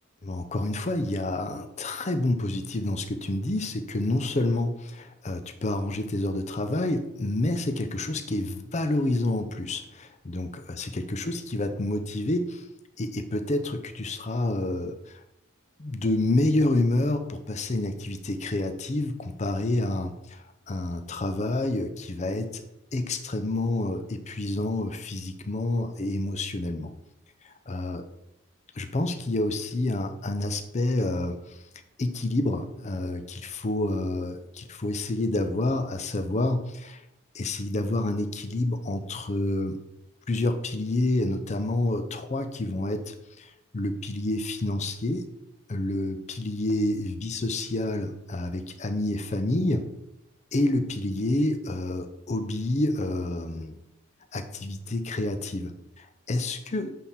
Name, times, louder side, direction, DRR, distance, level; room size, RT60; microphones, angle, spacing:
voice 1, 0.2-12.6 13.0-15.2 15.8-22.6 22.9-26.9 27.4-28.0 28.7-31.6 32.0-37.0 37.3-39.8 40.3-45.2 45.7-49.9 50.5-53.8 54.3-56.9, left 2 dB, 35° left, 8 dB, 0.6 m, -28 dB
7.6 x 3.6 x 4.2 m, 0.83 s
head